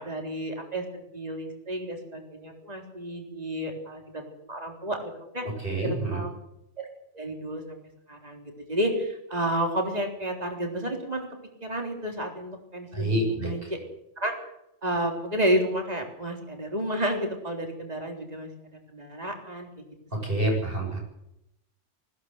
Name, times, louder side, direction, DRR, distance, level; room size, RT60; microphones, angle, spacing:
voice 1, 0.0-5.4 5.8-6.3 6.8-6.9 7.1-7.8 8.1-11.3 11.6-13.8 14.2-14.3 14.8-18.5 18.9-19.9, right 1 dB, 35° right, 2 dB, 3.8 m, -31 dB
voice 2, 5.4-6.2 12.9-13.7 20.1-21.0, right 1 dB, 50° right, 1 dB, 7.5 m, -28 dB
19.5 x 16.5 x 8.0 m, 0.83 s
omnidirectional pair, 1.2 m